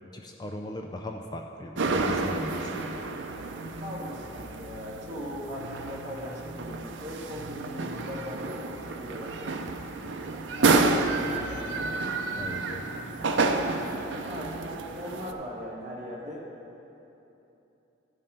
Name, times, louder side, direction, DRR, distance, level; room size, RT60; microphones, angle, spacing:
voice 1, 0.1-3.0 12.4-12.8, left 1 dB, 20° left, 3 dB, 0.3 m, -38 dB
sound 1, 1.8-15.3, right 3 dB, 80° right, 0.6 m, -30 dB
voice 2, 3.8-8.6 9.0-9.6 10.5-11.6 14.2-16.4, left 1 dB, 35° right, -5 dB, 1.8 m, -39 dB
13.0 x 5.4 x 5.5 m, 3.0 s
head